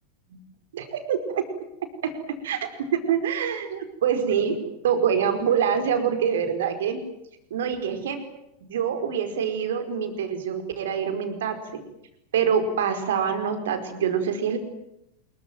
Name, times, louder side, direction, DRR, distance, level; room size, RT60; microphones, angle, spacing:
voice 1, 0.7-1.4 2.0-4.6 4.8-7.0 7.5-8.2 8.6-11.8 12.3-14.6, right 7 dB, 60° right, 7 dB, 4.8 m, -25 dB
26.0 x 22.5 x 9.2 m, 0.83 s
figure-of-eight pair, 90°, 0 cm